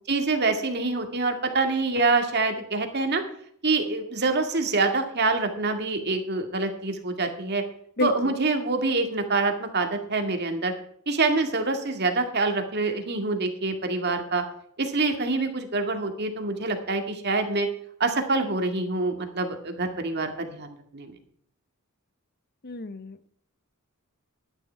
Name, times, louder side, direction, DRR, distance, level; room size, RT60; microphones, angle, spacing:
voice 1, 0.1-3.2 3.6-7.6 8.0-10.7 11.1-14.4 14.8-17.7 18.0-21.1, right 3 dB, 50° right, 5 dB, 2.1 m, -26 dB
voice 2, 22.6-23.3, left 3 dB, 45° left, 13 dB, 0.8 m, -29 dB
12.0 x 11.0 x 4.6 m, 0.66 s
head